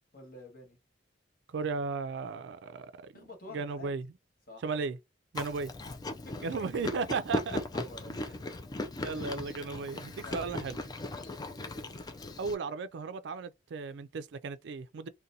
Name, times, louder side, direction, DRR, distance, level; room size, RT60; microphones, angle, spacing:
voice 1, 0.1-0.8 3.1-3.9 4.5-4.6 6.2-6.3 6.7-6.8 7.5-8.4 9.1-9.4 10.2-10.5 11.1-12.0, left 2 dB, 50° left, 1.5 m, -49 dB
voice 2, 1.5-3.1 3.5-4.1 4.6-5.0 5.3-5.7 6.4-7.6 9.0-10.8 12.4-15.1, right 4 dB, 65° right, 0.4 m, -35 dB
Chewing mastication, 5.3-12.5, left 2 dB, 20° left, 0.4 m, -38 dB
3.9 x 2.2 x 2.7 m
head